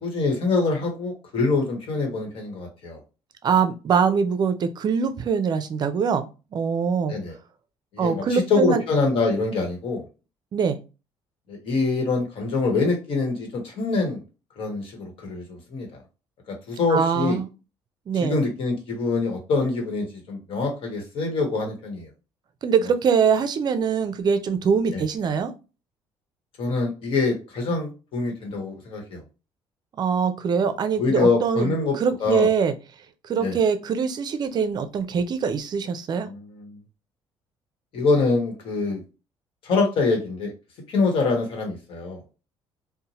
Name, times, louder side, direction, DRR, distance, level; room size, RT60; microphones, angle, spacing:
voice 1, 0.0-3.0 7.1-7.4 7.9-10.0 11.5-14.2 14.6-15.9 16.5-17.4 18.2-22.1 24.9-25.0 26.6-29.2 31.0-31.9 32.2-32.5 33.4-33.6 36.3-36.8 37.9-39.0 39.6-40.5 40.9-42.2, left 3 dB, 65° left, 2 dB, 1.1 m, -25 dB
voice 2, 3.4-6.3 6.5-7.1 8.0-8.8 10.5-10.8 16.9-17.5 18.1-18.4 22.6-25.5 30.0-32.7 33.2-36.3, right 6 dB, 45° right, 10 dB, 0.4 m, -23 dB
2.7 x 2.1 x 2.9 m, 0.31 s
cardioid pair, 90°, 10 cm